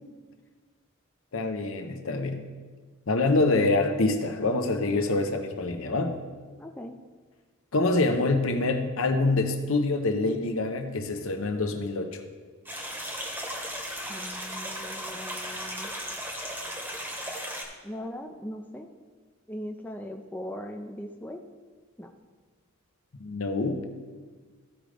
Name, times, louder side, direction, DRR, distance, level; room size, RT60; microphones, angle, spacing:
voice 1, 1.3-2.4 3.1-6.1 7.7-12.1 23.2-23.8, left 2 dB, 70° left, 6 dB, 0.8 m, -26 dB
voice 2, 6.6-7.0 14.1-15.9 17.8-18.9 19.5-21.4 22.0-22.1, equal, 10° left, 3 dB, 0.4 m, -39 dB
sound 1, 12.6-17.6, equal, 10° right, 1.0 m, -36 dB
14.0 x 5.1 x 3.3 m, 1.4 s
head